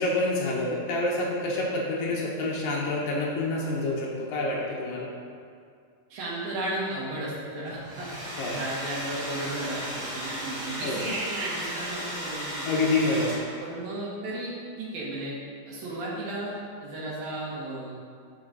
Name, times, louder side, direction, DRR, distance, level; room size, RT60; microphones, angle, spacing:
voice 1, 0.0-5.1 8.4-8.5 10.8-11.0 12.7-13.3, left 2 dB, 70° left, -3 dB, 2.7 m, -27 dB
voice 2, 6.1-12.7 13.6-15.4 15.7-18.1, right 1 dB, 70° right, -6 dB, 3.5 m, -34 dB
Domestic sounds home sounds, 7.7-13.7, equal, 35° right, 2.7 m, -35 dB
13.0 x 5.6 x 4.1 m, 2.2 s
omnidirectional pair, 4.3 m